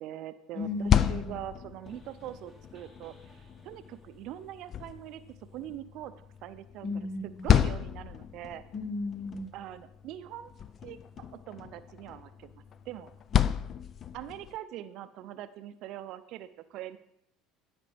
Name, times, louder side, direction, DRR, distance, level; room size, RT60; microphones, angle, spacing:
voice 1, 0.0-3.3 3.6-6.1 6.4-6.9 7.4-8.6 9.5-10.5 10.8-13.1 14.1-17.0, right 12 dB, 65° right, 13 dB, 0.5 m, -43 dB
voice 2, 0.5-1.3 6.8-7.5 8.7-9.5, left 3 dB, 60° left, 7 dB, 1.2 m, -35 dB
sound 1, 0.6-14.6, left 9 dB, 45° left, 0.4 m, -32 dB
sound 2, 1.8-5.8, left 2 dB, 25° left, 1.9 m, -60 dB
12.0 x 5.1 x 3.4 m, 0.78 s
supercardioid pair, 85°, 0 cm